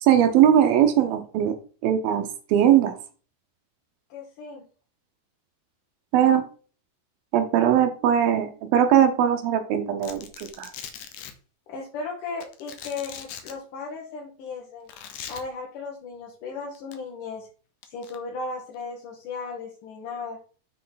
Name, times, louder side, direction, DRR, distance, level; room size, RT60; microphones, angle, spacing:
voice 1, 0.0-1.5 1.8-3.0 6.1-6.4 7.3-10.7, right 10 dB, 75° right, 8 dB, 2.3 m, -20 dB
voice 2, 4.1-4.6 11.7-14.9 15.3-17.5 17.8-20.4, left 4 dB, 60° left, -2 dB, 2.4 m, -36 dB
Domestic sounds home sounds, 10.0-11.3 12.4-13.5 14.9-15.4 16.7-16.9 17.8-18.2, left 9 dB, 85° left, 1.8 m, -40 dB
7.5 x 6.3 x 3.9 m, 0.39 s
omnidirectional pair, 4.9 m